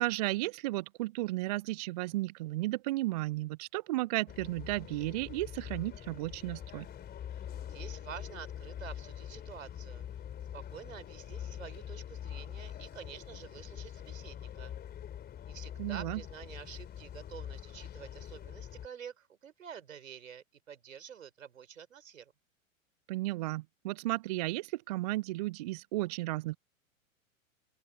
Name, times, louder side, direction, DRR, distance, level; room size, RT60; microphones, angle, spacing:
voice 1, 0.0-6.9 15.8-16.2 23.1-26.6, right 18 dB, 30° right, 0.4 m, -34 dB
sound 1, 4.3-18.9, left 10 dB, 25° left, 4.1 m, -44 dB
voice 2, 7.7-10.0 10.5-14.7 15.5-22.3, right 8 dB, 70° right, 4.4 m, -48 dB
open air
figure-of-eight pair, 100°, 41 cm